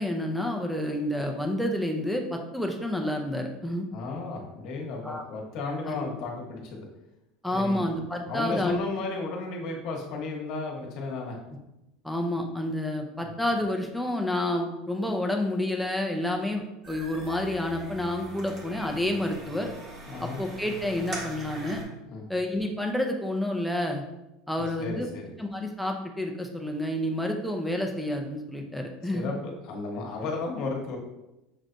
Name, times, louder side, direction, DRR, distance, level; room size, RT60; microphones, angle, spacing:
voice 1, 0.0-3.9 5.0-5.2 5.9-6.1 7.4-8.8 12.0-16.6 16.9-19.7 20.2-21.8 22.3-24.0 24.5-25.1 25.4-29.3, left 1 dB, ahead, 2 dB, 0.6 m, -29 dB
voice 2, 3.9-6.9 7.5-7.8 8.3-11.4 20.1-20.4 22.0-22.2 24.8-25.3 29.1-31.0, left 3 dB, 55° left, 0 dB, 1.2 m, -34 dB
sound 1, 16.8-21.8, right 2 dB, 30° right, 1.2 m, -41 dB
6.2 x 3.2 x 2.6 m, 0.94 s
cardioid pair, 150°, 0 cm